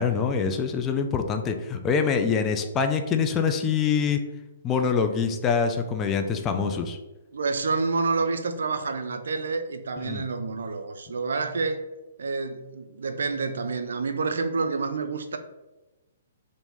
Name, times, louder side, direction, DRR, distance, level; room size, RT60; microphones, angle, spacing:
voice 1, 0.0-4.2 4.6-7.0 10.1-10.2, left 6 dB, 20° left, 5 dB, 0.3 m, -25 dB
voice 2, 7.3-11.9 12.2-15.4, right 4 dB, 70° right, 8 dB, 0.3 m, -28 dB
2.9 x 2.6 x 3.5 m, 1.1 s
figure-of-eight pair, 125°, 0 cm